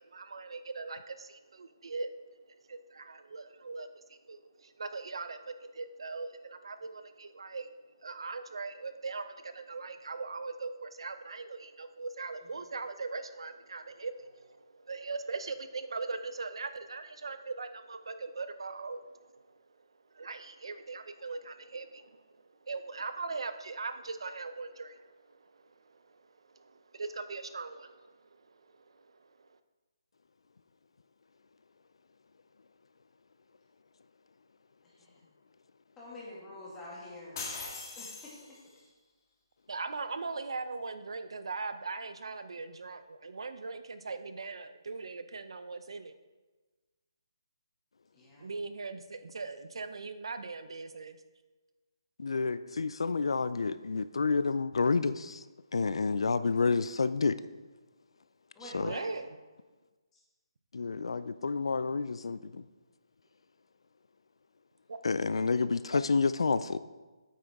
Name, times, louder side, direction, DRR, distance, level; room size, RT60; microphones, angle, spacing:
voice 1, 0.0-2.2 2.5-7.7 8.0-19.4 20.1-26.2 26.6-28.2 28.5-29.5 39.7-46.1 48.4-51.2 58.7-59.4 64.9-65.0, right 4 dB, 70° right, 0.6 m, -40 dB
voice 2, 36.0-37.4 38.0-38.3 48.1-48.5 58.6-59.1, left 1 dB, 10° left, 2.1 m, -46 dB
sound 1, 37.4-38.8, left 3 dB, 40° left, 1.8 m, -41 dB
voice 3, 52.2-55.4 55.7-57.4 58.6-58.9 60.7-62.6 65.0-66.8, left 4 dB, 75° left, 0.4 m, -29 dB
8.6 x 8.3 x 3.6 m
hypercardioid pair, 165°, 3 cm